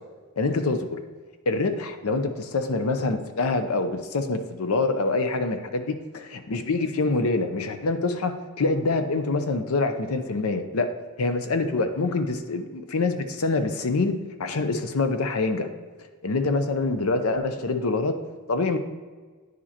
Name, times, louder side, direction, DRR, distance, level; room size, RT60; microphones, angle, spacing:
voice 1, 0.4-1.0 1.5-10.9 11.2-15.7 16.2-18.1 18.5-18.8, left 3 dB, 85° left, 8 dB, 0.6 m, -25 dB
9.5 x 5.0 x 2.9 m, 1.4 s
head